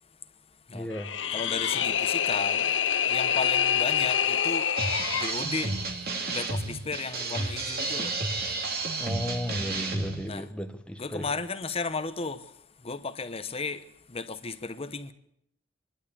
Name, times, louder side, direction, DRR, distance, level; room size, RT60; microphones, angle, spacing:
voice 1, 0.7-1.1 9.0-11.3, equal, 5° left, 1.3 m, -34 dB
sound 1, 0.9-5.4, left 8 dB, 75° left, 0.9 m, -26 dB
voice 2, 1.3-2.7 3.1-4.7 5.1-5.9 6.3-8.1 10.3-10.5 11.0-12.5 12.8-15.1, left 4 dB, 30° left, 1.1 m, -34 dB
sound 2, 4.8-10.3, right 3 dB, 55° right, 2.5 m, -31 dB
25.5 x 12.0 x 8.6 m
head